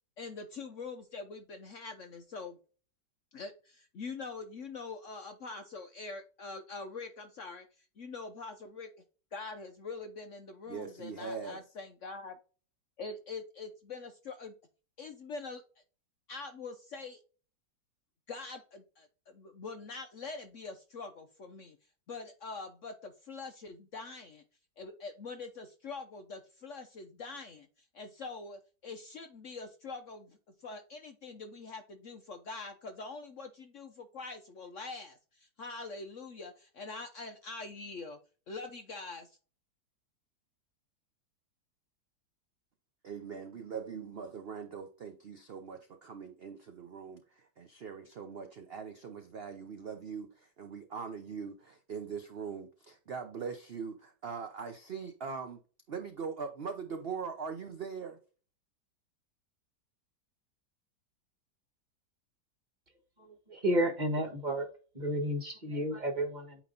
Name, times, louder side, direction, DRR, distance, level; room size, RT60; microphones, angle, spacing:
voice 1, 0.2-2.6 3.3-8.9 9.3-12.4 13.0-14.5 15.0-15.6 16.3-17.2 18.3-21.8 22.1-24.4 24.8-27.7 27.9-38.2 38.5-39.4, left 4 dB, 55° left, 7 dB, 0.9 m, -44 dB
voice 2, 10.7-11.6 43.0-55.6 55.9-58.2, right 5 dB, 55° right, 6 dB, 0.7 m, -41 dB
voice 3, 63.2-64.7 64.9-66.6, equal, 25° right, 4 dB, 1.4 m, -32 dB
8.9 x 3.1 x 3.9 m, 0.37 s
omnidirectional pair, 1.9 m